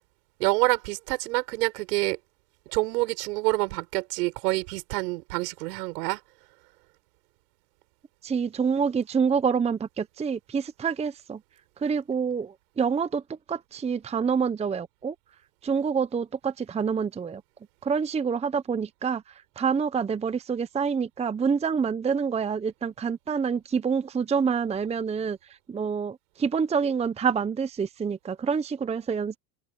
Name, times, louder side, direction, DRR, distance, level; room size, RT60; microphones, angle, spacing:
voice 1, 0.4-2.2 2.7-6.2, right 22 dB, 70° right, 6.4 m, -27 dB
voice 2, 8.2-11.4 11.8-13.2 13.5-15.1 15.6-17.4 17.8-19.2 19.6-25.4 25.7-29.4, right 6 dB, 15° right, 0.8 m, -27 dB
open air
supercardioid pair, 115°, 49 cm